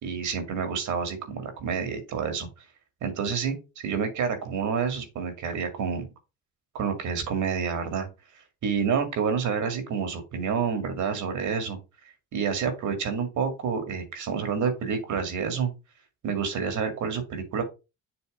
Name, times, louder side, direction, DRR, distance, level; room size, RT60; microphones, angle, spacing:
voice 1, 0.0-2.5 3.0-3.6 3.8-6.1 6.7-8.1 8.6-11.8 12.3-15.7 16.2-17.6, right 6 dB, 75° right, 6 dB, 2.1 m, -28 dB
6.9 x 3.2 x 5.2 m, 0.28 s
cardioid pair, 90°, 30 cm